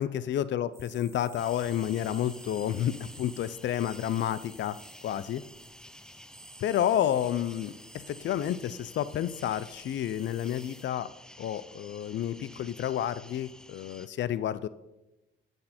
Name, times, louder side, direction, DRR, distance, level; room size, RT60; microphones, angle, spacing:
voice 1, 0.0-4.8 5.0-5.4 6.6-7.8 8.1-11.1 11.4-14.7, left 10 dB, 65° left, 16 dB, 0.5 m, -30 dB
sound 1, 0.7-10.8, right 2 dB, 15° right, 2.6 m, -53 dB
sound 2, 1.4-14.1, left 1 dB, 5° left, 0.6 m, -51 dB
13.0 x 6.6 x 4.3 m, 0.98 s
cardioid pair, 90°, 20 cm